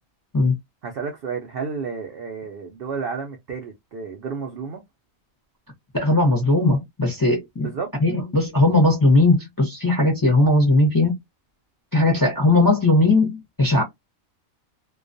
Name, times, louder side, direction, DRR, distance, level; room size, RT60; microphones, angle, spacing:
voice 1, 0.8-4.8 7.6-7.9, right 5 dB, 70° right, 0.5 m, -31 dB
voice 2, 5.9-7.7 8.0-11.1 11.9-13.8, left 2 dB, 25° left, 0.5 m, -18 dB
2.3 x 2.2 x 2.5 m
omnidirectional pair, 1.4 m